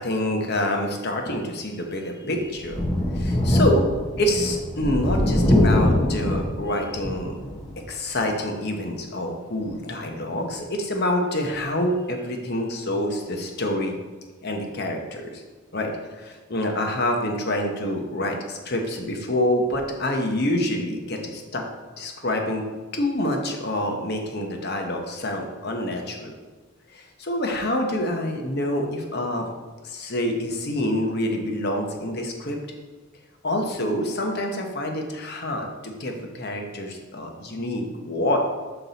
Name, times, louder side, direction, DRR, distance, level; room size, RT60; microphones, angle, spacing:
voice 1, 0.0-2.8 3.2-7.3 7.9-13.9 14.4-15.4 15.7-21.6 22.0-22.6 22.9-26.4 26.9-29.5 29.8-32.6 33.4-38.4, left 1 dB, 50° left, 3 dB, 0.9 m, -27 dB
Thunder, 2.6-7.7 8.2-8.3 9.6-9.7, left 1 dB, 20° left, 0.7 m, -22 dB
5.9 x 5.4 x 4.0 m, 1.3 s
head